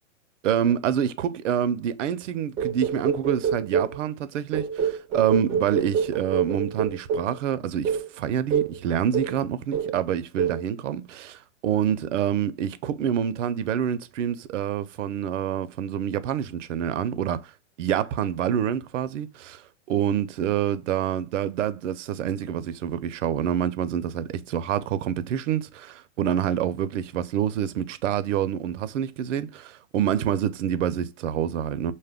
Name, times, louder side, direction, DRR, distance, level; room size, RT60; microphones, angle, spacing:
voice 1, 0.4-17.5 17.8-19.6 19.9-31.9, right 9 dB, 80° right, 0.5 m, -27 dB
sound 1, 2.6-4.0 4.5-7.4 7.8-8.1 8.5-8.8 9.1-9.4 9.7-10.0 10.4-10.6, right 7 dB, 15° right, 0.3 m, -26 dB
2.2 x 2.1 x 3.4 m
hypercardioid pair, 145°, 36 cm